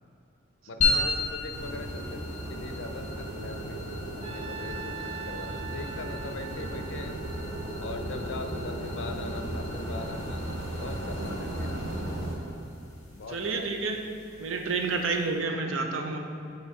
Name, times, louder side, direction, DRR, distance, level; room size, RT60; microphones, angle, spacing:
voice 1, 0.7-3.8 4.1-7.1 7.8-10.5 10.7-11.8 13.1-13.7 15.4-15.6, left 3 dB, 65° left, 6 dB, 0.5 m, -41 dB
sound 1, 0.8-15.5, left 3 dB, 40° left, 1.4 m, -36 dB
sound 2, 1.5-12.4, right 1 dB, 55° right, 1.0 m, -36 dB
Trumpet, 4.2-8.4, right 8 dB, 30° right, 0.3 m, -43 dB
voice 2, 12.3-12.7 13.3-14.0 14.4-16.2, right 4 dB, 90° right, 4 dB, 0.6 m, -30 dB
8.2 x 3.1 x 4.8 m, 2.7 s
head